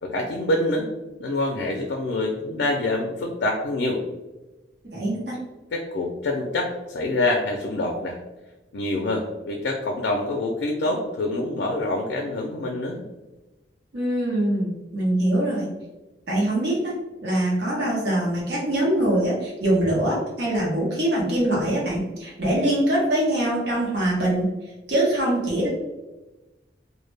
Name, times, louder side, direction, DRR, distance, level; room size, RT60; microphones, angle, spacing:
voice 1, 0.0-0.9 1.2-4.0 5.7-8.2 8.7-13.0, left 2 dB, 75° left, 1 dB, 0.4 m, -26 dB
voice 2, 4.9-5.4 13.9-15.7 16.3-24.5 24.9-25.7, right 1 dB, 75° right, -4 dB, 0.8 m, -23 dB
2.1 x 2.1 x 3.2 m, 1.1 s
head